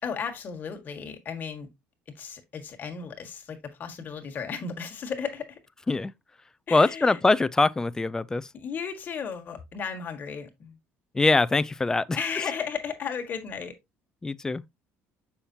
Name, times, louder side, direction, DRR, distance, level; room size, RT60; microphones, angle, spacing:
voice 1, 0.0-1.7 2.1-5.6 6.7-7.2 8.5-10.8 12.1-13.8, left 6 dB, 35° left, 1.5 m, -34 dB
voice 2, 6.7-8.5 11.1-12.2 14.2-14.6, left 3 dB, 10° left, 0.4 m, -23 dB
7.0 x 5.8 x 2.8 m
cardioid pair, 130°, 5 cm